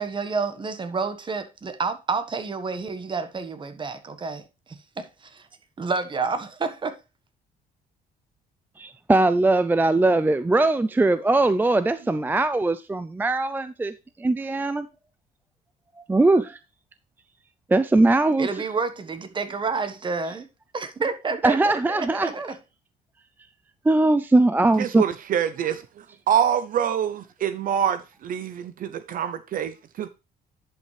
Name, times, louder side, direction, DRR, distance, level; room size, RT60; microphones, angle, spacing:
voice 1, 0.0-4.4 4.7-5.1 5.8-6.9 18.4-20.5 20.7-21.6 21.9-22.4, right 4 dB, 30° right, 1.4 m, -29 dB
voice 2, 8.8-14.9 16.1-16.6 17.7-18.5 21.4-22.5 23.8-25.0, right 2 dB, 10° right, 0.4 m, -21 dB
voice 3, 24.8-30.1, right 9 dB, 55° right, 0.7 m, -26 dB
10.5 x 5.5 x 3.3 m
cardioid pair, 110°, 17 cm